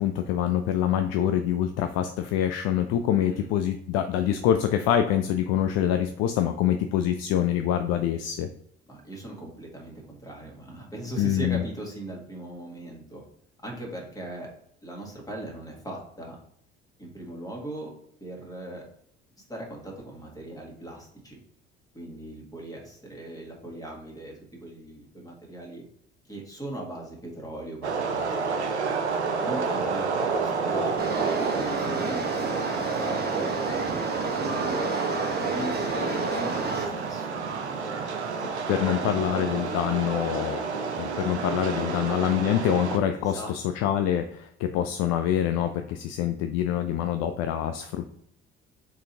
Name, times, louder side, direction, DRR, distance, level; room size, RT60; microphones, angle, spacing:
voice 1, 0.0-8.5 11.2-11.6 38.7-40.6 41.0-48.1, left 10 dB, 50° left, 8 dB, 0.4 m, -25 dB
voice 2, 8.9-13.2 13.6-14.5 14.8-16.4 17.0-17.9 18.2-18.8 19.5-21.4 21.9-25.8 26.3-28.7 29.4-34.9 35.4-38.4 38.7-40.3 41.7-42.0 43.2-43.8, right 1 dB, 10° left, -1 dB, 1.9 m, -40 dB
sound 1, 27.8-43.0, right 4 dB, 90° right, 0.5 m, -30 dB
sound 2, 31.0-36.9, right 3 dB, 30° right, 1.2 m, -29 dB
4.5 x 3.9 x 2.8 m, 0.70 s
figure-of-eight pair, 55°, 33 cm